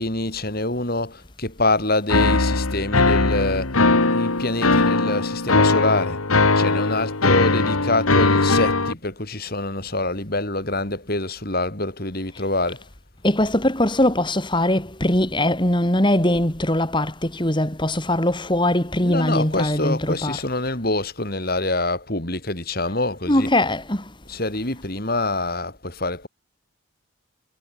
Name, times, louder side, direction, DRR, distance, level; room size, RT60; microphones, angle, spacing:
voice 1, 0.0-3.8 4.1-6.2 6.6-12.8 19.0-23.5 24.3-26.3, left 2 dB, 45° left, 3.8 m, -25 dB
sound 1, 2.1-8.9, left 3 dB, 85° left, 2.2 m, -19 dB
voice 2, 13.2-20.4 23.3-24.1, left 1 dB, 20° left, 2.8 m, -21 dB
head